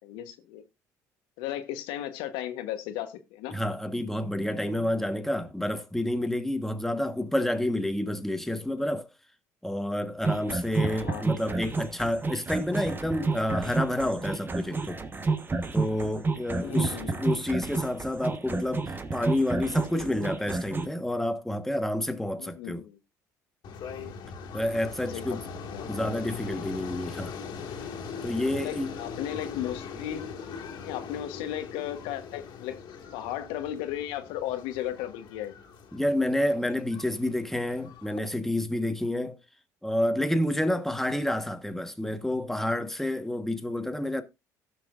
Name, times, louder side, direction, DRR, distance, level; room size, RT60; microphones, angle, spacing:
voice 1, 0.0-0.6 1.4-3.6 10.9-11.3 16.6-17.2 19.6-20.0 22.4-23.0 25.1-25.4 25.6-26.2 28.5-30.3 30.8-32.7 33.1-35.5, left 12 dB, 75° left, 1.2 m, -35 dB
voice 2, 3.5-9.1 9.6-15.0 15.7-22.8 24.5-25.4 25.9-27.4 28.2-28.9 35.9-39.4 39.8-44.2, left 1 dB, 5° left, 1.3 m, -29 dB
sound 1, 10.2-20.9, right 3 dB, 25° right, 1.2 m, -30 dB
sound 2, 23.6-38.3, left 5 dB, 60° left, 2.0 m, -41 dB
17.0 x 6.1 x 2.5 m
supercardioid pair, 75°, 9 cm